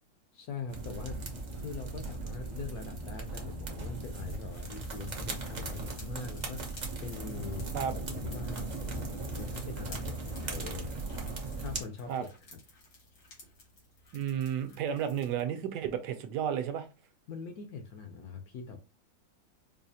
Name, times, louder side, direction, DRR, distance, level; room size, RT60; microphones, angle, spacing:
voice 1, 0.3-1.2 1.5-7.8 8.1-11.0 11.6-12.6 17.3-18.8, left 5 dB, 70° left, 1.0 m, -43 dB
sound 1, 0.7-11.8, right 3 dB, 55° right, 0.4 m, -38 dB
sound 2, 4.2-15.4, left 2 dB, 85° left, 2.3 m, -56 dB
voice 2, 14.1-16.9, right 9 dB, 75° right, 1.1 m, -32 dB
4.8 x 2.4 x 2.7 m
omnidirectional pair, 1.9 m